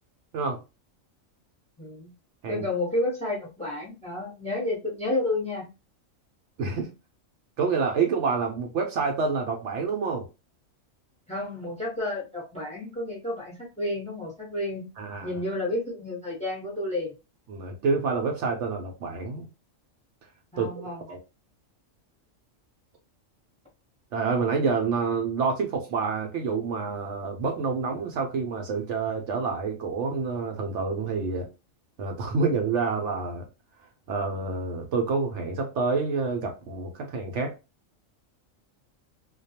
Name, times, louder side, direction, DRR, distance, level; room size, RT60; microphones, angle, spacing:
voice 1, 1.8-2.1 2.5-5.7 11.3-14.9 15.2-17.1 20.5-21.0, left 2 dB, 5° left, -2 dB, 0.7 m, -31 dB
voice 2, 6.6-6.9 7.6-10.3 15.0-15.3 17.5-19.5 20.6-21.2 24.1-31.5 32.0-33.5 34.1-37.5, right 4 dB, 70° right, 3 dB, 0.8 m, -28 dB
2.3 x 2.2 x 2.7 m, 0.27 s
omnidirectional pair, 1.4 m